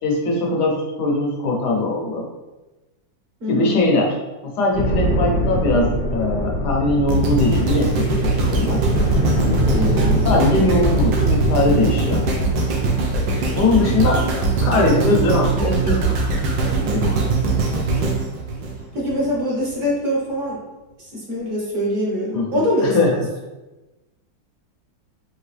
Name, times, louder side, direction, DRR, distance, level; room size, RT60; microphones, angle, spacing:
voice 1, 0.0-2.3 3.5-4.2 4.4-8.8 10.2-12.2 13.6-14.2 14.6-16.2 16.6-17.3 22.3-23.2, left 2 dB, 65° left, 0 dB, 1.3 m, -21 dB
voice 2, 3.4-3.8 9.7-10.1 18.9-20.6 21.0-23.0, equal, 45° right, -5 dB, 1.4 m, -23 dB
sound 1, 4.7-12.5, equal, 45° left, 0.6 m, -23 dB
sound 2, 7.1-19.3 19.8-19.9, right 3 dB, 75° right, 1.4 m, -21 dB
4.7 x 3.0 x 3.2 m, 1.1 s
omnidirectional pair, 2.1 m